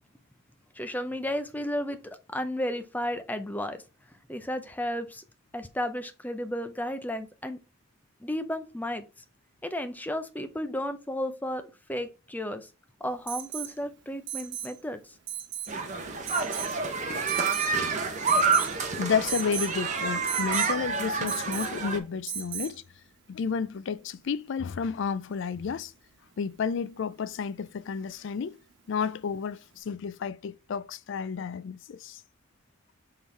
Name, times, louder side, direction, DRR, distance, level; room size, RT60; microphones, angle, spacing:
voice 1, 0.7-3.8 4.3-5.2 5.5-7.6 8.2-9.0 9.6-12.7 13.0-15.0, left 1 dB, 10° left, 0.6 m, -33 dB
Alarm, 13.3-13.7 14.3-14.7 15.3-15.7 16.3-16.7 17.3-17.8 18.3-18.8 19.3-19.7 20.3-20.7 21.3-21.8 22.3-22.8 24.5-24.6, right 8 dB, 55° right, 1.1 m, -35 dB
sound 1, 15.7-22.0, right 4 dB, 35° right, 1.1 m, -28 dB
voice 2, 19.0-22.8 23.3-25.9 26.4-28.6 28.9-32.2, left 6 dB, 60° left, 0.4 m, -31 dB
6.2 x 3.7 x 4.4 m
head